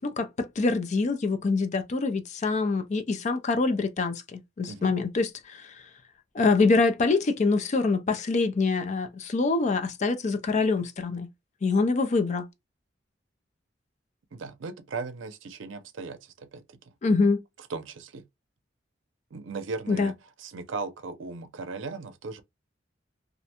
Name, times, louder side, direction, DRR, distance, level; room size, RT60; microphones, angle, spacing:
voice 1, 0.0-5.7 6.3-11.3 11.6-12.5 17.0-17.4 19.9-20.1, left 3 dB, 40° left, 0.4 m, -25 dB
voice 2, 14.3-16.8 17.7-18.3 19.3-22.4, right 4 dB, 85° right, 0.5 m, -37 dB
2.5 x 2.1 x 2.8 m
head